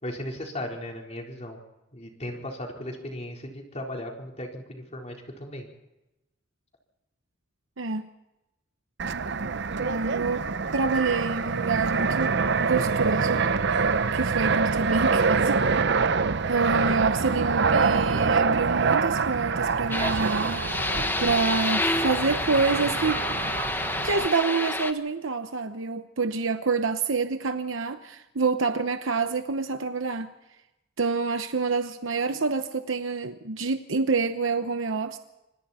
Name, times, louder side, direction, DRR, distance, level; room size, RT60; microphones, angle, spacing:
voice 1, 0.0-1.6 1.9-5.7, left 1 dB, 35° left, 4.3 m, -36 dB
voice 2, 7.8-8.1 9.8-10.4 10.7-12.3 12.6-13.4 14.1-15.6 16.5-20.6 21.2-23.3 24.0-30.3 31.0-35.2, right 4 dB, 85° right, 0.9 m, -27 dB
Fixed-wing aircraft airplane, 9.0-24.3, right 5 dB, 60° right, 0.8 m, -25 dB
sound 1, 19.9-24.9, left 2 dB, 10° left, 1.2 m, -29 dB
27.0 x 25.0 x 4.4 m
head